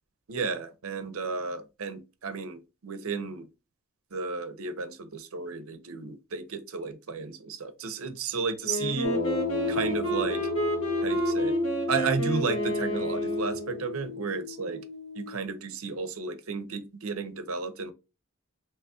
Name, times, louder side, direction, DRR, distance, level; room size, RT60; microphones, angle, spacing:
voice 1, 0.3-3.5 4.1-9.1 9.7-10.5 11.0-11.6 11.9-14.8 15.1-17.9, right 4 dB, 75° right, 0.7 m, -33 dB
Wind instrument woodwind instrument, 8.6-13.8, right 2 dB, 70° left, 1.4 m, -32 dB
sound 1, 9.0-15.5, left 3 dB, 50° left, 0.8 m, -31 dB
3.5 x 3.0 x 2.7 m
head